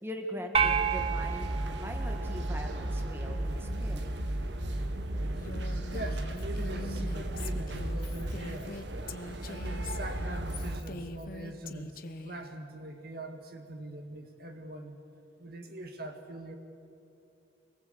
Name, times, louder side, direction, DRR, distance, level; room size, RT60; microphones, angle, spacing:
voice 1, 0.0-4.1, equal, 15° right, 3 dB, 1.8 m, -41 dB
sound 1, 0.5-3.0, right 7 dB, 30° right, 0.7 m, -31 dB
sound 2, 0.6-10.8, right 1 dB, 75° right, 1.4 m, -34 dB
Female speech woman speaking, 5.3-12.4, left 2 dB, 50° left, 1.1 m, -43 dB
voice 2, 5.9-8.8 9.4-15.0 15.4-16.5, right 1 dB, 55° right, 5 dB, 1.9 m, -43 dB
25.5 x 19.0 x 8.0 m, 2.7 s
head